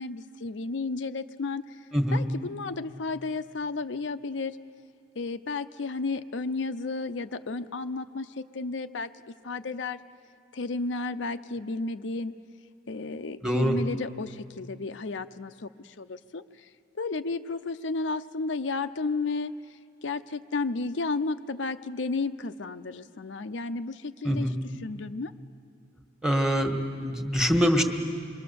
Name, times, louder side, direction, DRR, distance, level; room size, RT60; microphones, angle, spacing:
voice 1, 0.0-1.6 2.1-4.6 5.2-9.1 9.4-10.0 10.5-12.3 12.9-16.4 16.9-19.6 20.0-24.5 24.8-25.3, left 3 dB, 75° left, 9 dB, 0.6 m, -32 dB
voice 2, 13.4-13.8 24.2-24.5 26.2-27.8, equal, 5° right, 4 dB, 1.6 m, -24 dB
26.0 x 22.5 x 6.9 m, 2.3 s
head